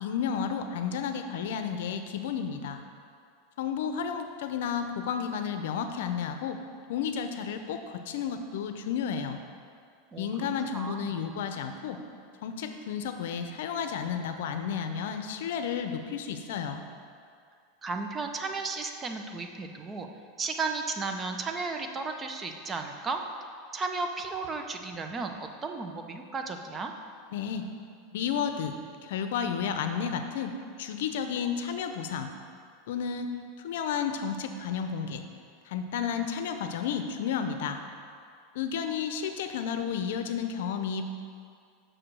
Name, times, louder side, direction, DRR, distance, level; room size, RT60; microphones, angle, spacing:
voice 1, 0.0-2.8 3.6-6.6 6.9-9.4 10.2-12.0 12.4-16.8 27.3-27.7 28.1-28.7 29.0-32.3 32.9-35.2 35.6-37.8 38.5-41.1, left 7 dB, 75° left, 7 dB, 0.6 m, -32 dB
voice 2, 10.1-10.5 10.7-11.1 17.8-20.1 20.4-23.2 23.7-26.9, right 4 dB, 20° right, 5 dB, 0.6 m, -34 dB
6.2 x 5.0 x 6.1 m, 2.2 s
supercardioid pair, 130°, 0 cm